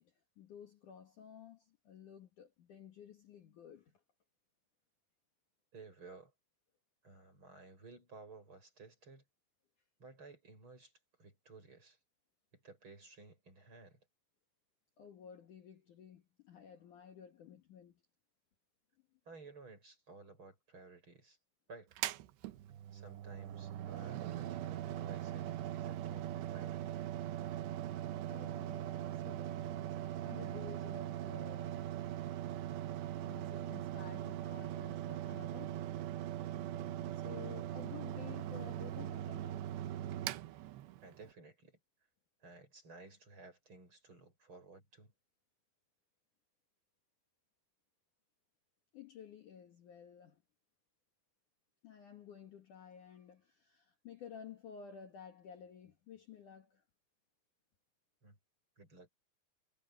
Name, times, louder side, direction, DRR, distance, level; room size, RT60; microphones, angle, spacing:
voice 1, 0.0-4.0 15.0-18.0 28.3-30.0 30.2-31.8 33.2-35.8 36.5-39.7 48.9-50.4 51.8-56.8, left 8 dB, 55° left, 2.7 m, -53 dB
voice 2, 5.7-6.3 7.0-9.2 10.0-10.9 11.2-12.0 12.5-14.0 19.3-21.4 21.7-21.9 22.9-27.1 41.0-41.8 42.4-45.1 58.2-58.4 58.8-59.1, right 3 dB, 30° right, 8.5 m, -56 dB
Mechanical fan, 21.9-41.3, right 12 dB, 85° right, 3.2 m, -41 dB
omnidirectional pair, 5.0 m